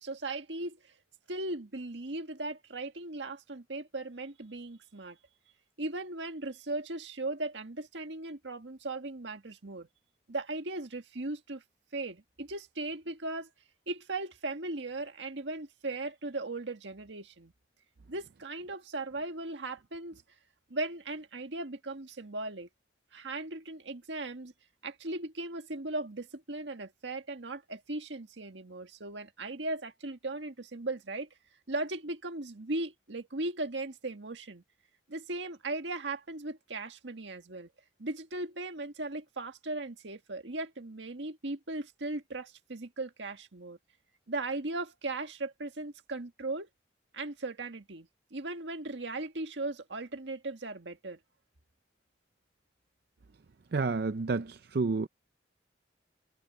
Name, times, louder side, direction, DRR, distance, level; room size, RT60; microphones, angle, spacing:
voice 1, 0.0-0.9 1.3-5.2 5.8-9.9 10.3-11.6 11.9-13.5 13.9-17.5 18.1-20.2 20.7-22.7 23.1-24.5 24.8-31.3 31.7-34.6 35.1-37.7 38.0-43.8 44.3-46.7 47.1-51.2, right 2 dB, 75° right, 1.7 m, -38 dB
voice 2, 53.7-54.4 54.7-55.1, right 3 dB, 60° right, 0.5 m, -29 dB
head